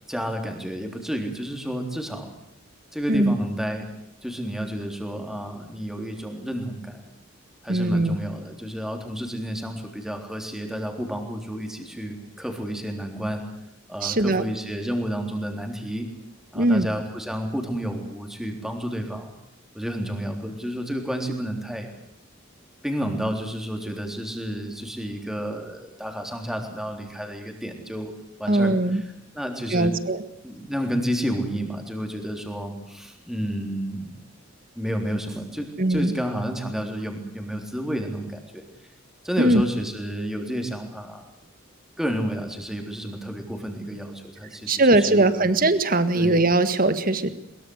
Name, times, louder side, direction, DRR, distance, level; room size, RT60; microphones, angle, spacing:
voice 1, 0.1-2.3 2.9-3.9 4.2-7.0 7.6-13.4 13.9-16.1 16.5-19.3 19.7-21.9 22.8-28.1 28.4-29.0 29.3-29.9 30.4-34.2 34.8-38.6 39.2-41.2 42.0-45.5 46.1-46.4, equal, ahead, 3 dB, 3.7 m, -30 dB
voice 2, 7.7-8.2 14.0-14.4 16.5-16.9 28.5-29.0 29.7-30.2 35.8-36.1 39.4-39.6 44.7-47.3, right 2 dB, 40° right, 12 dB, 1.7 m, -20 dB
22.5 x 22.0 x 8.0 m, 0.76 s
head